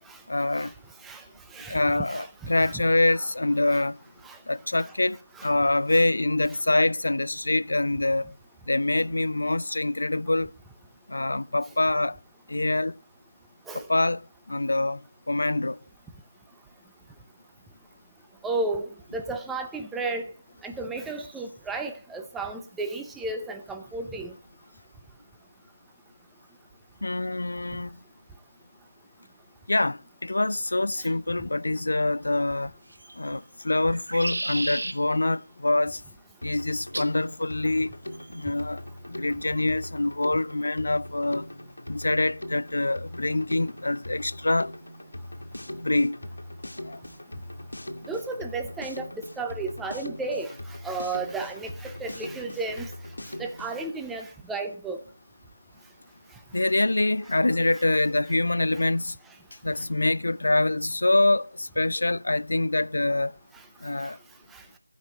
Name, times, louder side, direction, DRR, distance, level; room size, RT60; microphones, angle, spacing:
voice 1, 0.3-0.7 1.7-4.0 4.5-8.3 8.7-10.5 11.1-12.2 12.5-12.9 13.7-15.0 15.3-15.8 27.0-28.0 29.7-32.7 33.2-36.0 36.4-37.9 38.3-38.8 39.1-41.5 41.9-44.7 45.8-46.2 46.8-47.0 56.5-59.2 59.6-63.3 63.8-64.2, left 2 dB, 60° left, 0.4 m, -25 dB
voice 2, 1.5-2.8 3.7-3.8 4.2-4.4 4.8-4.9 5.3-5.5 13.7-13.9 18.4-20.3 20.6-24.3 48.1-50.5 50.8-52.9 53.4-55.0 64.0-64.1 64.5-64.6, right 3 dB, 5° right, 0.4 m, -33 dB
sound 1, 32.9-33.4 33.9-35.0 36.9-37.2 38.1-38.5, right 1 dB, 65° right, 1.2 m, -33 dB
Drum kit, 36.4-53.9, left 1 dB, 85° left, 1.5 m, -41 dB
15.0 x 5.3 x 6.4 m
figure-of-eight pair, 170°, 0 cm